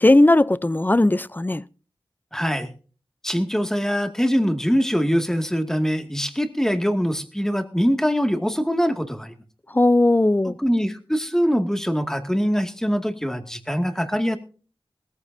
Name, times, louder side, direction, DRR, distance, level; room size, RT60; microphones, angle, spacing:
voice 1, 0.0-1.6 9.7-10.6, left 2 dB, 20° left, 0.6 m, -17 dB
voice 2, 2.3-2.7 3.2-9.3 10.4-14.4, equal, 5° left, 2.2 m, -23 dB
20.0 x 14.5 x 2.7 m
wide cardioid pair, 55°, 9 cm